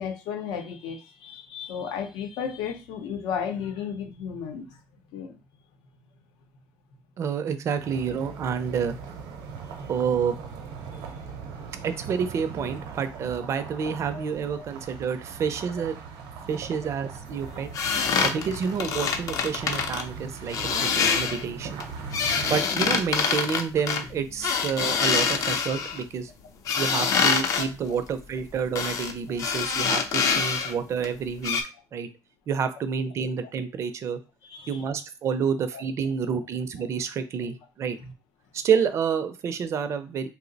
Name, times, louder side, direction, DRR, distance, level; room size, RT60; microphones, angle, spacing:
voice 1, 0.0-4.7 5.1-5.4 11.2-11.3 14.1-14.2 17.6-17.7 27.5-27.9 29.3-29.4 34.4-34.8 35.7-35.8, left 7 dB, 90° left, 4 dB, 0.7 m, -34 dB
voice 2, 7.2-9.0 9.9-10.4 11.8-16.0 16.5-17.7 18.2-21.8 22.5-26.3 26.8-31.6 31.9-32.1 32.5-34.2 34.7-38.0 38.5-40.3, right 6 dB, 40° right, 10 dB, 0.4 m, -29 dB
sound 1, 7.8-22.6, right 5 dB, 80° right, 0.7 m, -40 dB
sound 2, 17.7-20.0 20.5-21.4 21.8-26.0 26.7-27.7 28.8-29.1 29.4-30.7 31.0-31.1 31.4-31.6, left 6 dB, 50° left, 0.5 m, -25 dB
2.8 x 2.0 x 3.9 m, 0.30 s
cardioid pair, 145°, 7 cm